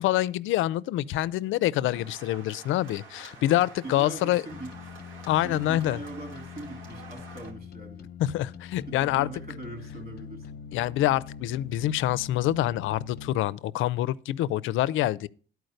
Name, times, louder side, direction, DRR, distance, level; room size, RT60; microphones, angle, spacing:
voice 1, 0.0-4.4 5.3-6.0 8.2-9.3 10.7-15.3, left 14 dB, 80° left, 0.4 m, -26 dB
voice 2, 1.6-2.1 3.4-3.5 3.8-4.7 5.2-8.1 8.9-10.6, right 2 dB, 50° right, 3.3 m, -42 dB
sound 1, 1.9-7.5, right 4 dB, 80° right, 2.7 m, -48 dB
sound 2, 4.5-13.4, left 7 dB, 50° left, 0.8 m, -43 dB
11.5 x 4.7 x 6.5 m
cardioid pair, 90°, 20 cm